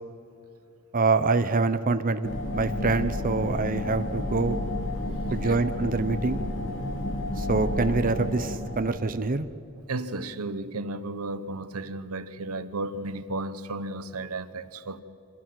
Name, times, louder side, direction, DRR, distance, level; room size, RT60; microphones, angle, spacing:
voice 1, 0.9-4.6 5.3-6.4 7.4-9.5, right 3 dB, 40° right, 10 dB, 0.7 m, -25 dB
sound 1, 2.2-8.8, left 1 dB, 60° left, 2.8 m, -31 dB
voice 2, 9.9-15.0, right 2 dB, 90° right, 12 dB, 1.0 m, -34 dB
25.0 x 16.0 x 7.6 m, 2.7 s
head